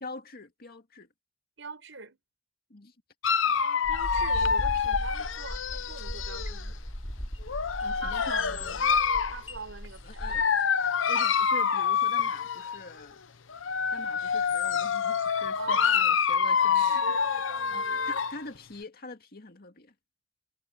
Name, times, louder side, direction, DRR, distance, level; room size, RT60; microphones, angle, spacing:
voice 1, 0.0-1.1 2.7-2.9 7.8-8.9 10.0-10.5 11.1-13.2 13.9-19.9, left 3 dB, 55° left, 2.1 m, -45 dB
voice 2, 1.6-2.2 3.4-6.8 8.0-8.9 9.3-10.6 15.6-16.1 16.7-18.2, right 4 dB, 85° right, 4.7 m, -43 dB
Dog, 3.2-6.6 7.5-9.4 10.2-12.8 13.5-18.4, left 6 dB, 90° left, 0.8 m, -27 dB
sound 1, 3.8-10.4, equal, 30° left, 3.7 m, -37 dB
head